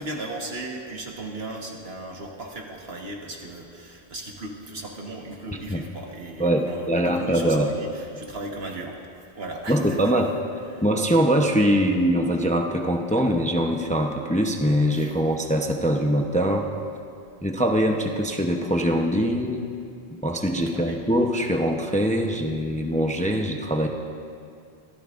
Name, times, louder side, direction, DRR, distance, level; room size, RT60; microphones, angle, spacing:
voice 1, 0.0-9.0 9.4-10.1 10.7-10.9 14.9-15.1 20.7-21.0, right 2 dB, 75° right, 0 dB, 1.8 m, -36 dB
voice 2, 6.4-7.7 9.7-10.3 10.8-16.7 17.4-19.7 20.2-23.9, equal, 10° left, 2 dB, 0.7 m, -23 dB
24.5 x 14.0 x 2.6 m, 2.4 s
omnidirectional pair, 1.0 m